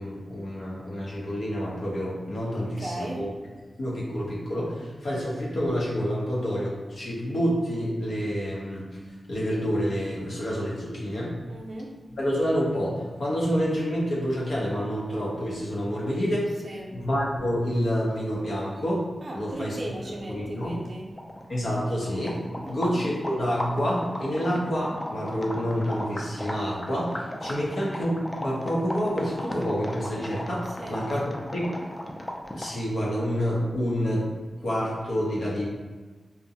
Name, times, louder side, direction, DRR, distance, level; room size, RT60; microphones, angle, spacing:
voice 1, 0.0-3.3 3.8-8.9 9.3-11.3 12.2-16.5 16.9-19.0 19.3-19.8 20.3-20.8 21.5-22.4 22.7-31.7 32.5-34.3 34.6-35.7, equal, 80° left, -6 dB, 0.8 m, -28 dB
voice 2, 2.5-3.3 11.5-12.0 16.6-17.0 19.2-21.1 22.6-22.8 30.8-31.1, right 1 dB, 50° right, -1 dB, 0.4 m, -37 dB
sound 1, 21.1-32.9, left 1 dB, 20° left, 0.3 m, -36 dB
2.5 x 2.1 x 2.8 m, 1.3 s
wide cardioid pair, 90°, 0 cm